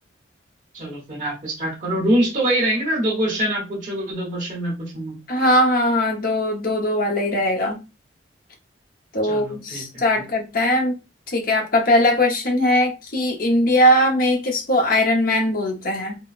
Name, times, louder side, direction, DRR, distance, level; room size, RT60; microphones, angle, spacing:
voice 1, 0.7-5.1 9.2-10.2, right 1 dB, 40° right, 1.2 m, -24 dB
voice 2, 5.3-7.8 9.1-11.0 11.3-16.2, left 1 dB, 50° left, 0.8 m, -20 dB
3.8 x 2.2 x 2.4 m
head